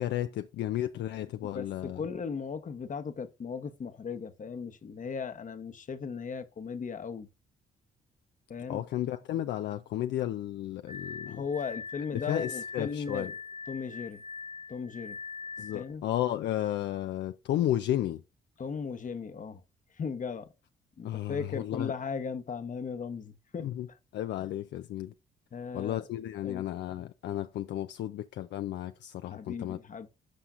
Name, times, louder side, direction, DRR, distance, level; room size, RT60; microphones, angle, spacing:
voice 1, 0.0-2.0 8.7-11.4 12.1-13.3 15.6-18.2 21.0-21.9 23.6-23.9 24.1-25.1 25.7-29.8, left 12 dB, 70° left, 0.4 m, -33 dB
voice 2, 1.5-7.3 8.5-8.8 11.3-13.3 13.7-14.2 14.7-15.2 15.7-16.0 18.6-19.6 20.0-20.4 21.0-23.7 25.5-26.1 26.4-26.6 29.3-30.1, left 5 dB, 45° left, 0.9 m, -37 dB
Glass, 10.9-15.9, left 5 dB, 35° right, 1.4 m, -42 dB
11.5 x 5.6 x 2.5 m
supercardioid pair, 60°, 19 cm